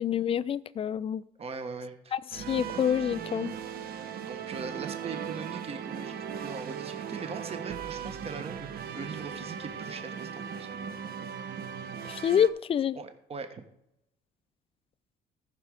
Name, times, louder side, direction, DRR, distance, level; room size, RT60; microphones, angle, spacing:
voice 1, 0.0-1.2 2.1-3.5 12.1-13.0, left 8 dB, 35° left, 0.4 m, -27 dB
voice 2, 1.4-2.1 3.9-10.7 13.0-13.6, right 5 dB, 35° right, 1.2 m, -41 dB
sound 1, 2.3-12.5, right 8 dB, 60° right, 1.0 m, -38 dB
14.5 x 5.9 x 4.9 m
cardioid pair, 110°, 17 cm